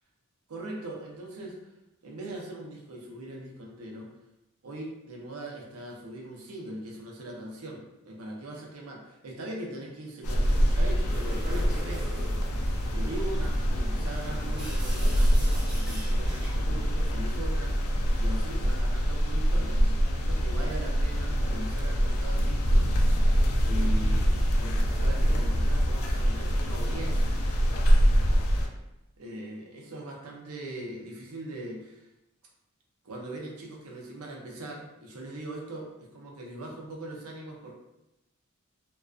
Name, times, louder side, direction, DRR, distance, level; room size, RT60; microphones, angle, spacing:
voice 1, 0.5-1.7 2.0-4.1 4.6-12.4 12.9-22.9 23.6-27.4 29.2-32.1 33.0-37.7, right 1 dB, 90° right, -1 dB, 0.6 m, -40 dB
sound 1, 10.2-28.7, equal, 80° left, 0.4 m, -25 dB
sound 2, 11.1-16.7, right 1 dB, 5° right, 0.4 m, -44 dB
2.4 x 2.2 x 2.3 m, 0.91 s
head